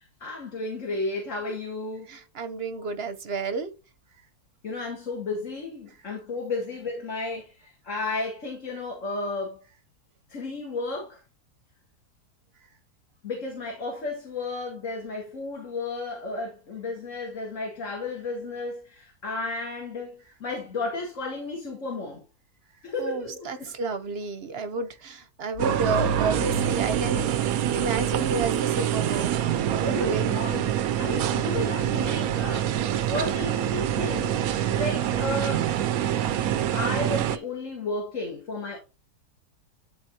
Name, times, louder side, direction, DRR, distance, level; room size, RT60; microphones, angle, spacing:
voice 1, 0.2-2.1 4.6-9.6 10.3-11.2 13.2-22.2 22.8-23.7 29.6-32.7 33.1-35.7 36.7-38.8, left 3 dB, 50° left, 2.1 m, -33 dB
voice 2, 2.1-3.7 23.0-30.4, right 4 dB, 45° right, 1.0 m, -31 dB
sound 1, 25.5-28.4, right 1 dB, 85° left, 1.2 m, -34 dB
sound 2, 25.6-37.4, right 11 dB, 70° right, 1.1 m, -26 dB
12.0 x 4.1 x 2.8 m
omnidirectional pair, 1.7 m